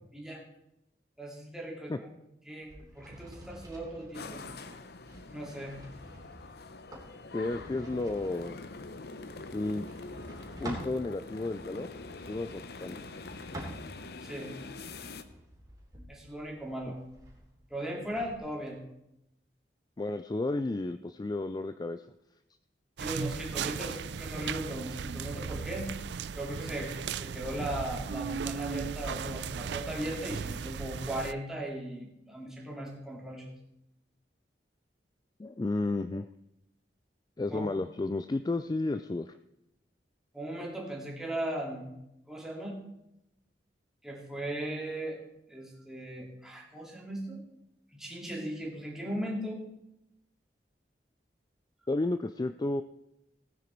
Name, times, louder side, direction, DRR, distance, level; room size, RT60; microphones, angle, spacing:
voice 1, 0.1-0.4 1.2-2.1 2.5-4.4 5.3-5.8 14.2-14.5 16.1-17.0 17.7-18.8 23.0-25.9 26.3-33.5 37.5-37.8 40.3-41.9 42.3-42.8 44.0-45.2 45.5-47.4 47.9-49.6, right 1 dB, 5° right, -2 dB, 2.9 m, -38 dB
sound 1, 2.6-11.0 11.8-14.2 14.7-18.3, right 1 dB, 20° right, 3.4 m, -49 dB
sound 2, 4.1-15.2, left 3 dB, 65° left, 0.8 m, -45 dB
voice 2, 7.3-8.6 9.5-9.9 10.6-11.9 12.3-13.0 20.0-22.1 35.4-36.3 37.4-39.4 51.9-52.8, left 2 dB, 25° left, 11 dB, 0.3 m, -32 dB
sound 3, 23.0-31.3, right 6 dB, 80° right, 0.4 m, -37 dB
17.0 x 9.1 x 4.5 m, 0.85 s
head